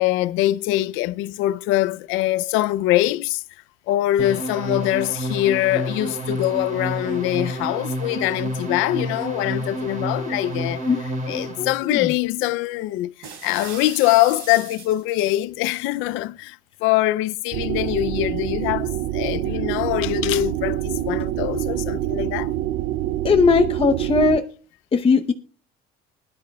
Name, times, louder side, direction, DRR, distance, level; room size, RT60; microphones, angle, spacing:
voice 1, 0.0-3.4 3.9-22.5, left 15 dB, 75° left, 0.5 m, -23 dB
sound 1, 4.2-11.7, right 1 dB, 40° right, 4.0 m, -29 dB
voice 2, 11.6-12.1 23.2-24.4 24.9-25.3, left 4 dB, 25° left, 0.8 m, -19 dB
sound 2, 13.2-15.4, right 6 dB, 85° right, 4.2 m, -39 dB
sound 3, 17.5-24.4, right 13 dB, 65° right, 0.5 m, -26 dB
21.0 x 10.5 x 2.3 m
cardioid pair, 110°, 20 cm